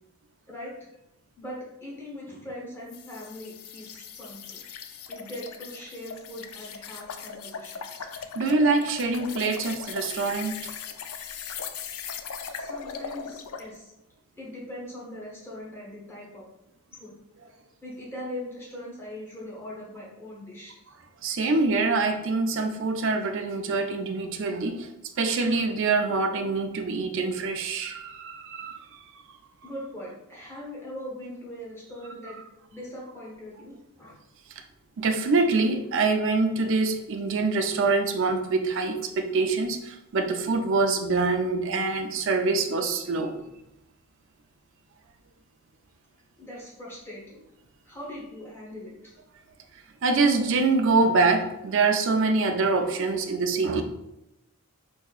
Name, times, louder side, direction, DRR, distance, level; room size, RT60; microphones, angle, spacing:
voice 1, 0.5-0.9 1.4-4.8 5.1-8.1 12.6-13.9 14.4-16.4 16.9-17.1 17.8-20.9 29.6-32.4 32.7-34.1 46.4-47.4 47.8-49.2, left 1 dB, 10° left, -6 dB, 1.0 m, -41 dB
sound 1, 2.9-13.7, left 6 dB, 75° left, 0.3 m, -39 dB
voice 2, 8.3-10.7 12.6-12.7 21.2-24.9 25.2-29.2 35.0-43.3 50.0-53.8, right 3 dB, 60° right, 6 dB, 0.4 m, -25 dB
4.7 x 2.6 x 2.4 m, 0.90 s
head